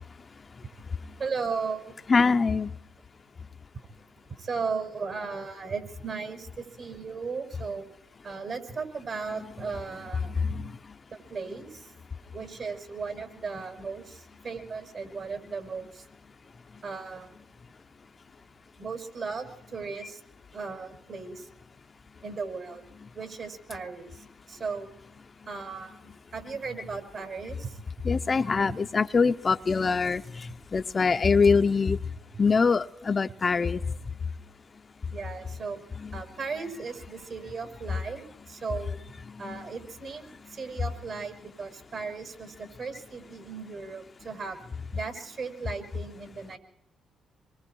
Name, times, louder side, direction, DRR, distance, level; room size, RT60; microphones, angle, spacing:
voice 1, 1.2-1.9 4.2-7.9 8.2-10.3 11.1-11.9 12.3-16.0 16.8-17.4 18.8-20.2 20.5-21.5 22.2-22.8 23.1-24.9 25.5-27.8 35.1-35.8 36.1-39.0 39.4-44.6 44.9-46.6, right 4 dB, 55° right, 6 dB, 5.7 m, -36 dB
voice 2, 2.1-2.7 10.4-10.8 28.0-32.0 32.4-33.8 36.0-36.1 39.3-39.6, left 4 dB, 35° left, 9 dB, 0.7 m, -24 dB
27.0 x 22.5 x 4.6 m, 0.77 s
cardioid pair, 90°, 0 cm